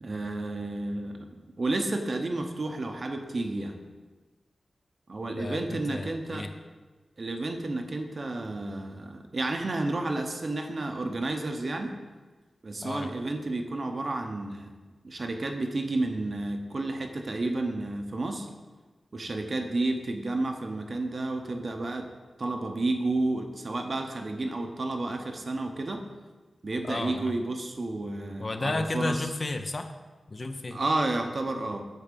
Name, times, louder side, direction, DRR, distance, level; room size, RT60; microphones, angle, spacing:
voice 1, 0.0-3.8 5.1-6.5 7.2-12.0 12.6-14.7 15.0-18.5 19.1-22.1 22.4-26.0 26.6-29.2 30.7-31.8, right 2 dB, 45° right, 4 dB, 0.8 m, -31 dB
voice 2, 5.3-6.5 12.8-13.1 26.8-27.4 28.4-29.9 30.3-30.8, left 2 dB, 40° left, 7 dB, 0.6 m, -33 dB
8.3 x 4.2 x 6.8 m, 1.3 s
wide cardioid pair, 120°, 0 cm